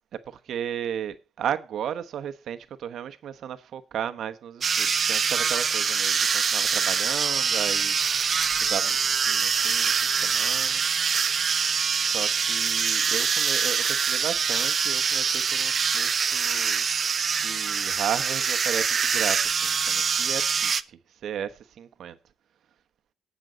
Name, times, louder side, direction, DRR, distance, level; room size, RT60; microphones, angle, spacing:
voice 1, 0.3-8.0 8.5-10.8 12.0-16.9 17.4-22.2, right 9 dB, 70° right, 1.1 m, -35 dB
sound 1, 4.6-20.8, right 6 dB, 45° right, 0.6 m, -24 dB
18.5 x 6.3 x 3.8 m
cardioid pair, 90°, 0 cm